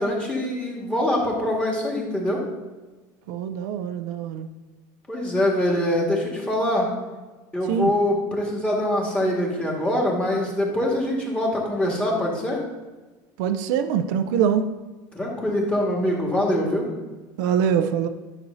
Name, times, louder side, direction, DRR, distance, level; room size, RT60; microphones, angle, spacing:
voice 1, 0.0-2.4 5.1-6.9 7.5-12.6 15.1-16.9, left 1 dB, 10° left, -3 dB, 1.8 m, -24 dB
voice 2, 3.3-4.5 7.7-7.9 13.4-14.6 17.4-18.1, right 8 dB, 85° right, 8 dB, 0.5 m, -23 dB
9.7 x 6.1 x 2.7 m, 1.2 s
cardioid pair, 135°, 10 cm